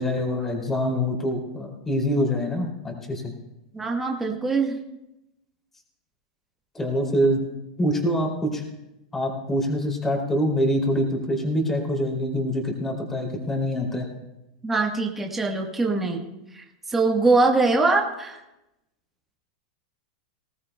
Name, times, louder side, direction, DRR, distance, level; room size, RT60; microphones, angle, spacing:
voice 1, 0.0-3.3 6.7-7.4 7.8-8.6 9.1-14.1, equal, 10° left, 0 dB, 2.8 m, -25 dB
voice 2, 3.7-4.8 14.6-16.2 16.5-18.4, right 3 dB, 5° right, 1 dB, 1.3 m, -23 dB
19.0 x 18.5 x 2.2 m, 0.92 s
supercardioid pair, 165°, 4 cm